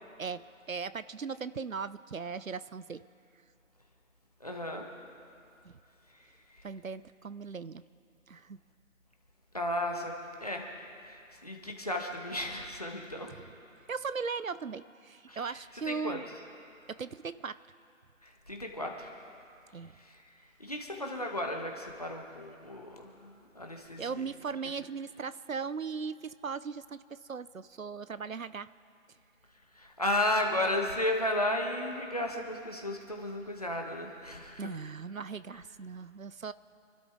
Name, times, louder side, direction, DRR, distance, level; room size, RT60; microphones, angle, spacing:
voice 1, 0.2-3.0 5.6-5.7 6.6-7.8 8.3-8.6 13.9-16.2 16.9-17.6 19.7-19.9 24.0-28.7 34.6-36.5, right 5 dB, 80° right, 16 dB, 0.7 m, -38 dB
voice 2, 4.4-4.9 6.1-6.6 9.5-10.1 10.4-10.7 11.0-13.3 15.3-16.2 18.2-19.1 19.9-24.3 29.7-34.7, left 1 dB, 30° left, 1 dB, 1.4 m, -34 dB
28.0 x 12.0 x 3.6 m, 2.5 s
figure-of-eight pair, 175°, 40 cm